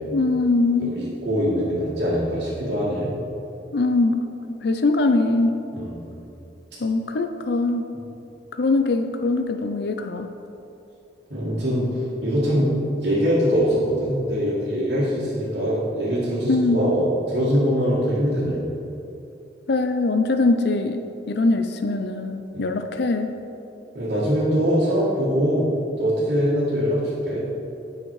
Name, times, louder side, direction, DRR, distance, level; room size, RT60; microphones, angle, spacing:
voice 1, 0.1-0.9 3.7-4.2 4.6-5.6 6.8-7.8 8.6-10.3 16.5-16.8 19.7-23.3, left 3 dB, 65° left, 7 dB, 0.5 m, -22 dB
voice 2, 0.8-3.1 5.7-6.0 11.3-12.7 13.0-18.7 22.5-22.8 23.9-25.7 26.0-27.4, equal, 65° right, -10 dB, 1.9 m, -23 dB
9.2 x 5.8 x 4.7 m, 2.7 s
head